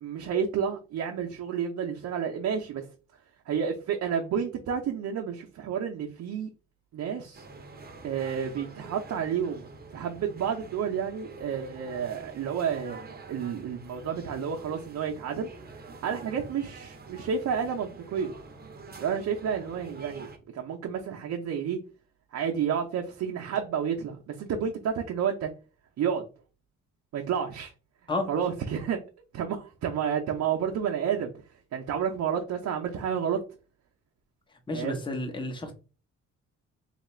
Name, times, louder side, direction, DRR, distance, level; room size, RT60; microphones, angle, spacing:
voice 1, 0.0-2.8 3.5-6.5 6.9-7.4 8.0-15.5 16.0-18.3 19.0-21.8 22.3-25.5 26.0-26.2 27.1-27.7 28.3-29.0 29.3-31.3 31.7-33.4 34.7-35.0, right 7 dB, 65° right, 1 dB, 0.7 m, -30 dB
sound 1, 7.3-20.4, right 3 dB, 30° right, 0.8 m, -46 dB
voice 2, 34.7-35.7, left 2 dB, 15° left, 4 dB, 0.9 m, -31 dB
2.9 x 2.4 x 4.3 m, 0.34 s
cardioid pair, 90°, 30 cm